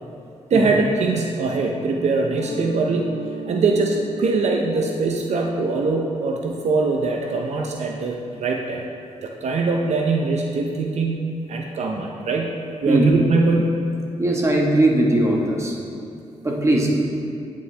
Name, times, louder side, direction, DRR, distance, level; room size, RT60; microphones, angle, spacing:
voice 1, 0.5-3.2 3.5-8.8 9.2-13.8, right 3 dB, 65° right, 1 dB, 0.7 m, -22 dB
Mallet percussion, 2.4-7.9, right 2 dB, 70° left, 1.6 m, -37 dB
voice 2, 14.2-15.8 16.4-17.0, right 1 dB, 25° right, -1 dB, 1.4 m, -19 dB
9.3 x 8.4 x 3.4 m, 2.5 s
cardioid pair, 95°, 12 cm